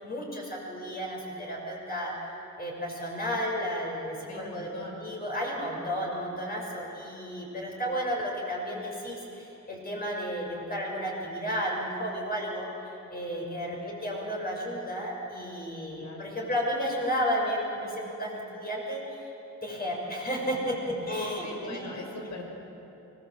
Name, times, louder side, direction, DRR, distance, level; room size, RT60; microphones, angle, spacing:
voice 1, 0.0-2.1 2.6-4.7 5.0-12.7 13.1-19.3 19.6-22.1, equal, 30° left, -2 dB, 6.6 m, -32 dB
voice 2, 4.3-5.1 13.8-14.0 16.0-16.3 21.0-22.5, left 2 dB, 65° left, 1 dB, 5.4 m, -42 dB
24.5 x 18.0 x 7.9 m, 3.0 s
cardioid pair, 90°, 30 cm